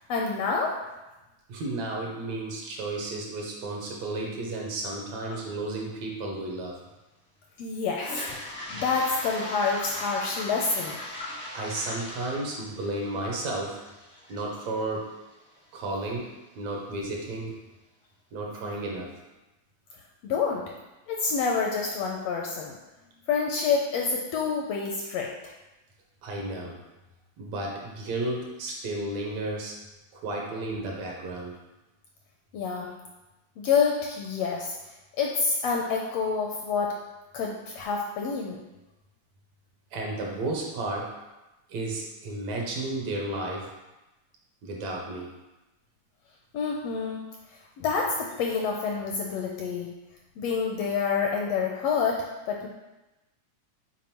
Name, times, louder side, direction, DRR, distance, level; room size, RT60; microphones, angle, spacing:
voice 1, 0.1-0.8 5.3-5.4 7.6-11.0 20.2-20.6 21.1-22.8 23.3-25.3 32.5-32.9 33.6-34.8 35.2-37.0 37.3-38.6 46.5-47.2 47.8-49.9 50.4-52.7, left 5 dB, 80° left, 0 dB, 1.5 m, -28 dB
voice 2, 1.5-6.8 11.5-13.8 14.3-15.1 15.7-17.5 18.3-19.1 26.2-26.8 27.4-29.7 30.1-31.6 39.9-41.1 41.7-43.7 44.6-45.3, right 2 dB, 75° right, -1 dB, 2.2 m, -33 dB
Toilet flush, 7.9-15.8, left 1 dB, 15° left, 0.4 m, -39 dB
7.2 x 4.5 x 3.0 m, 1.0 s
omnidirectional pair, 3.3 m